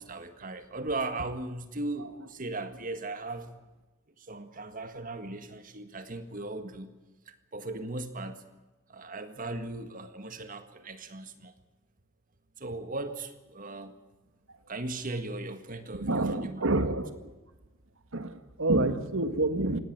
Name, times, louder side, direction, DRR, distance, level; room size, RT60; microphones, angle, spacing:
voice 1, 0.0-3.5 4.2-7.0 7.3-8.4 8.9-11.5 12.6-14.0 14.7-16.6, right 2 dB, 45° right, 9 dB, 1.8 m, -37 dB
voice 2, 16.0-17.3 18.1-19.8, right 2 dB, 90° right, 10 dB, 1.8 m, -28 dB
19.0 x 17.5 x 9.5 m, 1.1 s
head